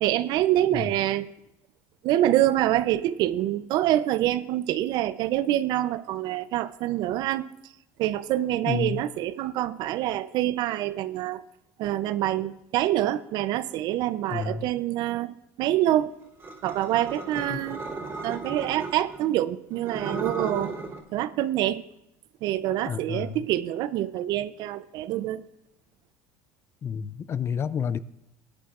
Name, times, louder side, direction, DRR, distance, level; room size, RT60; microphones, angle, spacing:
voice 1, 0.0-1.3 2.0-7.5 8.0-11.4 11.8-16.1 16.6-17.8 18.2-20.7 21.1-21.8 22.4-25.4, right 13 dB, 60° right, 0.6 m, -26 dB
voice 2, 8.7-9.0 14.3-14.7 17.5-17.7 22.9-23.4 26.8-28.0, left 7 dB, 35° left, 0.4 m, -30 dB
sound 1, 16.4-19.2 19.8-21.0, right 3 dB, 30° right, 2.8 m, -35 dB
19.5 x 9.9 x 2.5 m
supercardioid pair, 115°, 8 cm